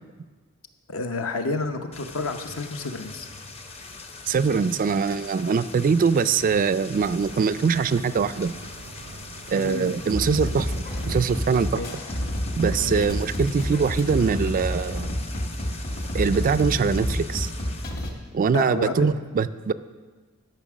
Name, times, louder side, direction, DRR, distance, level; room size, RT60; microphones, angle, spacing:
voice 1, 0.9-3.3 9.5-9.9 11.7-11.9 12.8-13.1 18.5-19.1, left 3 dB, 65° left, 6 dB, 0.8 m, -30 dB
sound 1, 1.9-17.9, left 3 dB, 30° left, 0.7 m, -41 dB
voice 2, 4.3-8.5 9.5-11.8 12.6-15.1 16.1-17.5 18.3-19.7, right 5 dB, 40° right, 14 dB, 0.3 m, -23 dB
sound 2, 6.9-11.9, right 4 dB, 80° right, 0.6 m, -46 dB
sound 3, 10.1-18.1, equal, 45° left, 1.5 m, -29 dB
12.5 x 5.8 x 6.1 m, 1.4 s
head